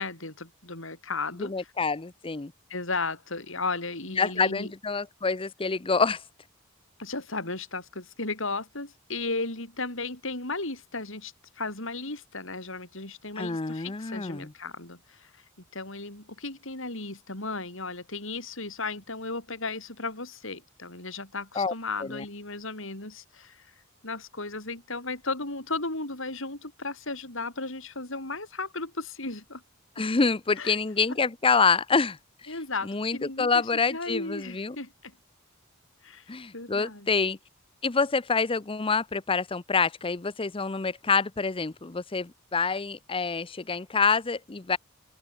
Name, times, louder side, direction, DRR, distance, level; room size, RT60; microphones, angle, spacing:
voice 1, 0.0-1.7 2.7-4.7 7.0-15.3 15.7-23.7 24.0-29.6 30.6-30.7 32.5-33.6 33.9-35.1 36.0-37.1, left 3 dB, 70° left, 7.7 m, -35 dB
voice 2, 1.4-2.5 4.1-6.2 13.4-14.5 21.6-21.7 22.0-22.2 30.0-32.5 32.8-34.8 36.3-37.4 37.8-44.8, left 4 dB, 25° left, 0.7 m, -27 dB
open air
head